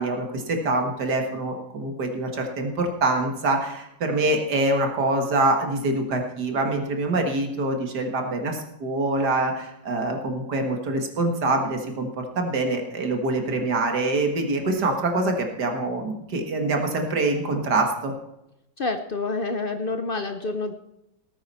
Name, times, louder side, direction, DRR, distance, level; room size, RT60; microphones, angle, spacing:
voice 1, 0.0-12.1 12.4-18.1, right 2 dB, 65° right, 4 dB, 2.1 m, -25 dB
voice 2, 18.8-20.7, left 3 dB, 55° left, 8 dB, 0.6 m, -28 dB
19.0 x 8.9 x 4.2 m, 0.88 s
omnidirectional pair, 2.0 m